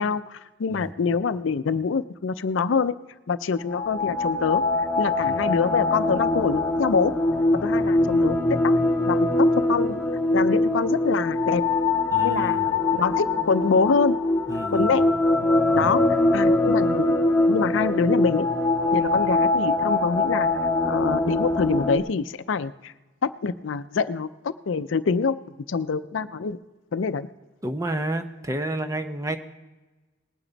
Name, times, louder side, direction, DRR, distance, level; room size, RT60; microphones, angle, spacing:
voice 1, 0.0-2.9 3.3-4.6 5.0-7.1 7.5-8.8 9.1-10.0 10.3-11.6 12.2-14.2 14.7-15.1 15.7-16.0 16.3-17.2 17.5-18.5 18.9-20.5 20.8-22.9 23.2-25.4 25.7-26.6 26.9-27.3, left 5 dB, 80° left, 14 dB, 0.5 m, -25 dB
sound 1, 3.6-22.0, left 2 dB, 15° left, 1.4 m, -23 dB
voice 2, 12.1-12.7 14.5-15.0 15.7-16.1 27.6-29.4, right 1 dB, 15° right, 7 dB, 0.7 m, -31 dB
20.0 x 9.1 x 4.0 m, 1.2 s
head